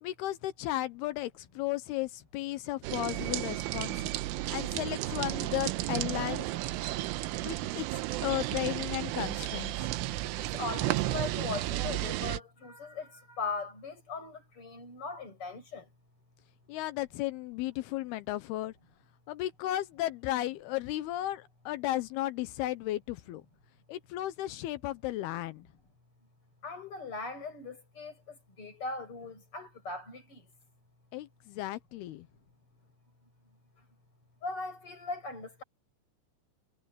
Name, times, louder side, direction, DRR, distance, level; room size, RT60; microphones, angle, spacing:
voice 1, 0.0-4.1 4.5-6.5 7.4-7.9 8.2-10.0 16.7-18.7 19.3-23.4 23.9-25.6 31.1-32.3, left 15 dB, 90° left, 2.2 m, -34 dB
sound 1, 2.8-12.4, right 16 dB, 85° right, 3.4 m, -33 dB
voice 2, 10.4-15.8 26.6-30.4 34.4-35.6, left 4 dB, 25° left, 7.3 m, -39 dB
omnidirectional pair, 5.6 m